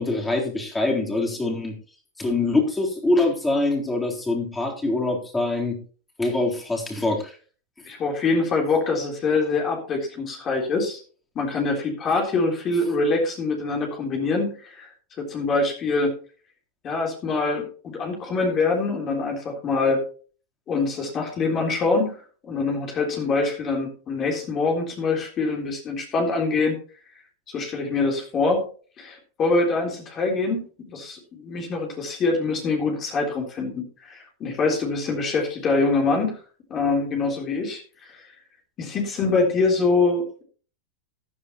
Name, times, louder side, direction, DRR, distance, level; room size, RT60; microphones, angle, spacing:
voice 1, 0.0-1.8 2.2-5.8 6.2-7.3, left 2 dB, 10° left, 0 dB, 3.8 m, -24 dB
voice 2, 7.9-11.0 11.4-14.9 15.2-16.1 16.8-20.0 20.7-26.7 27.5-28.7 29.0-36.4 36.7-38.4 38.8-40.4, left 3 dB, 30° left, 1 dB, 3.6 m, -24 dB
14.5 x 10.0 x 3.1 m, 0.40 s
hypercardioid pair, 120°, 0 cm